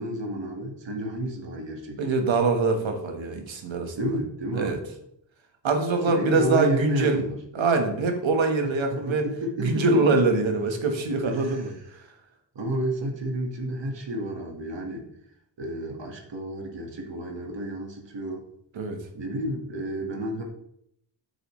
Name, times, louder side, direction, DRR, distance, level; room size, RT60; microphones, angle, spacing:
voice 1, 0.0-2.2 4.0-4.9 6.1-7.4 8.6-10.2 11.3-11.7 12.6-15.1 15.6-18.4 19.1-20.4, right 1 dB, 70° right, 1 dB, 1.9 m, -31 dB
voice 2, 2.0-3.9 4.5-4.8 5.6-7.2 7.5-9.2 9.6-11.7 18.7-19.0, right 3 dB, 90° right, 5 dB, 1.5 m, -24 dB
8.4 x 6.8 x 3.2 m, 0.73 s
wide cardioid pair, 90°, 45 cm